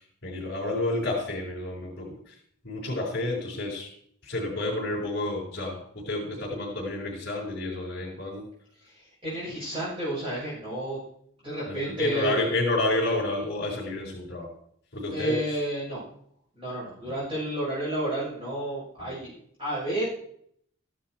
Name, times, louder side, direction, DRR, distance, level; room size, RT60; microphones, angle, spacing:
voice 1, 0.0-2.3 2.6-3.9 4.2-8.4 11.7-14.5 14.9-15.6 19.0-19.2, left 2 dB, 50° left, -5 dB, 4.9 m, -30 dB
voice 2, 9.2-11.0 11.4-12.5 15.1-16.0 16.6-19.3 19.6-20.0, right 1 dB, 25° right, -9 dB, 6.2 m, -31 dB
15.0 x 11.0 x 4.5 m, 0.66 s
head